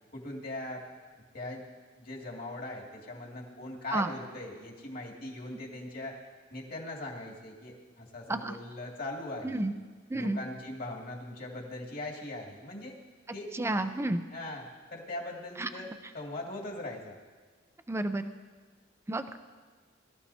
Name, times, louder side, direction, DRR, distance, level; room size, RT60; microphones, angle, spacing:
voice 1, 0.1-0.8 1.3-1.6 2.0-6.2 6.5-9.7 10.1-13.0 13.3-13.5 14.3-14.6 14.9-15.9 16.1-17.2, left 2 dB, 50° left, -1 dB, 2.3 m, -40 dB
voice 2, 9.4-9.7 10.1-10.4 13.5-14.2 15.6-15.9 17.9-18.2 19.1-19.2, right 2 dB, 15° right, 8 dB, 0.5 m, -30 dB
21.5 x 13.5 x 2.8 m, 1.4 s
head